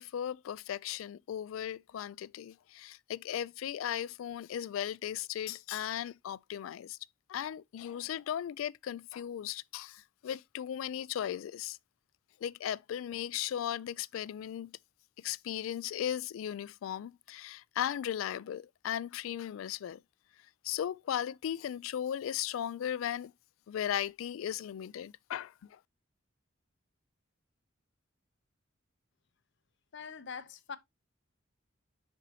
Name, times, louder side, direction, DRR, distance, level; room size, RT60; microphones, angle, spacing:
voice 1, 0.0-7.0 7.3-11.8 12.4-14.7 15.2-20.0 20.6-23.3 23.7-25.8, left 10 dB, 80° left, 0.3 m, -37 dB
voice 2, 29.9-30.8, left 6 dB, 60° left, 0.7 m, -43 dB
10.0 x 4.3 x 2.7 m
head